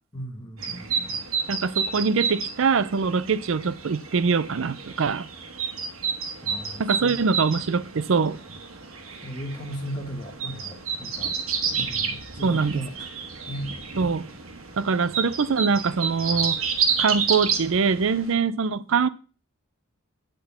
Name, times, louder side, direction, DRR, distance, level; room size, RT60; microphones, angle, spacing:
voice 1, 0.1-1.1 6.4-7.1 9.2-11.3 11.8-12.9 13.5-13.7, equal, 20° left, 1.4 m, -36 dB
sound 1, 0.6-18.3, right 6 dB, 85° right, 1.4 m, -30 dB
voice 2, 1.5-5.3 6.8-8.4 12.4-12.8 14.0-14.3 14.8-16.6 17.0-19.1, right 5 dB, 65° right, 0.5 m, -23 dB
8.8 x 3.9 x 7.0 m
head